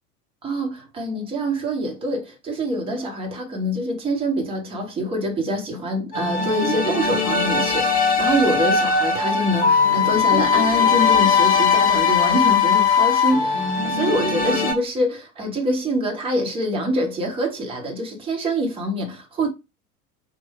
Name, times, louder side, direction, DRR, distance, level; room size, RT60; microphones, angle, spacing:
voice 1, 0.4-19.5, equal, 10° right, 0.7 m, -25 dB
sound 1, 6.1-14.7, left 5 dB, 15° left, 1.3 m, -19 dB
3.0 x 2.0 x 4.1 m
figure-of-eight pair, 85°, 48 cm